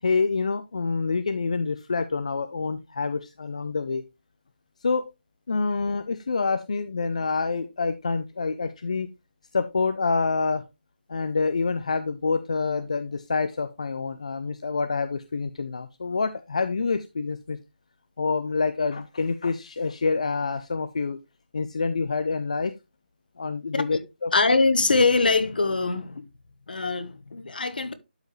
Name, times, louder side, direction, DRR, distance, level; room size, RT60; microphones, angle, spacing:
voice 1, 0.0-4.0 4.8-5.0 5.5-9.1 9.5-10.6 11.1-17.6 18.2-21.2 21.5-22.7 23.4-24.3, left 4 dB, 40° left, 0.6 m, -27 dB
voice 2, 24.3-26.2 26.7-27.9, left 3 dB, 60° left, 1.3 m, -22 dB
12.0 x 4.8 x 3.2 m
hypercardioid pair, 175°, 6 cm